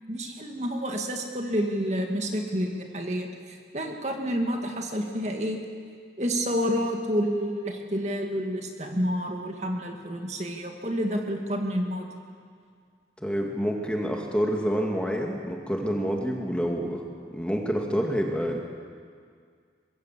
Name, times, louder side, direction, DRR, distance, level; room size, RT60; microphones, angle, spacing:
voice 1, 0.1-5.6 6.2-12.1, equal, 40° right, 2 dB, 2.3 m, -29 dB
voice 2, 13.2-17.0 17.3-18.6, equal, 5° left, 0 dB, 2.1 m, -27 dB
24.5 x 21.5 x 7.6 m, 2.1 s
head